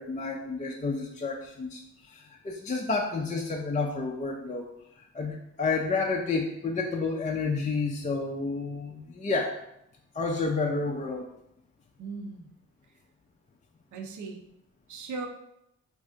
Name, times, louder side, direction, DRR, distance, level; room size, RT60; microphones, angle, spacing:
voice 1, 0.0-4.7 5.0-9.6 10.1-11.3, left 3 dB, 20° left, 0 dB, 0.4 m, -30 dB
voice 2, 12.0-12.5 13.9-14.4 14.9-15.3, right 4 dB, 50° right, 4 dB, 0.7 m, -38 dB
3.2 x 2.7 x 3.6 m, 0.81 s
supercardioid pair, 60°, 39 cm